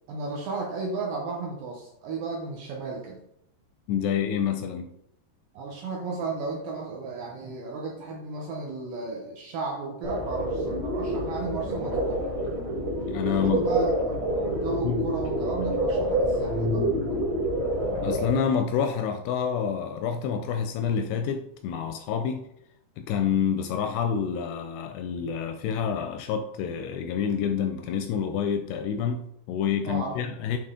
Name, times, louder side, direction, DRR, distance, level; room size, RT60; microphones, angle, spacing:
voice 1, 0.1-3.2 5.5-12.2 13.2-14.1 14.5-16.8 29.9-30.1, right 3 dB, 80° right, -1 dB, 2.0 m, -34 dB
voice 2, 3.9-4.9 13.1-13.7 14.8-15.1 18.0-22.4 23.0-30.6, left 7 dB, 85° left, 7 dB, 2.4 m, -28 dB
sound 1, 10.0-18.3, right 1 dB, 60° right, 0.7 m, -27 dB
9.0 x 4.1 x 3.6 m, 0.76 s
omnidirectional pair, 5.2 m